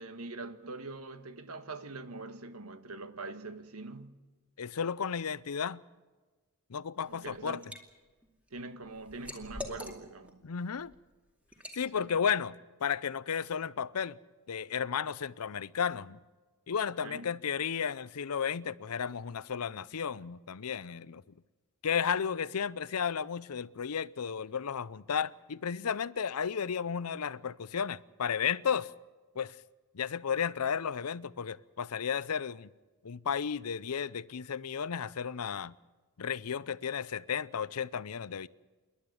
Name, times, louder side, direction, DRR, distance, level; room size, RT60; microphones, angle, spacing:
voice 1, 0.0-4.1 7.1-7.7 8.5-10.4 11.9-12.2 17.0-17.3, right 3 dB, 80° right, 1.5 m, -43 dB
voice 2, 4.6-5.8 6.7-7.6 10.4-10.9 11.8-14.2 14.5-16.2 16.7-21.2 21.8-28.9 29.4-29.6 29.9-32.7 33.0-35.7 36.2-38.5, left 7 dB, 90° left, 0.6 m, -33 dB
Liquid, 7.0-7.8 8.2-10.3 10.8-11.0 11.5-11.8, left 1 dB, 5° right, 2.4 m, -44 dB
28.0 x 11.5 x 9.3 m
head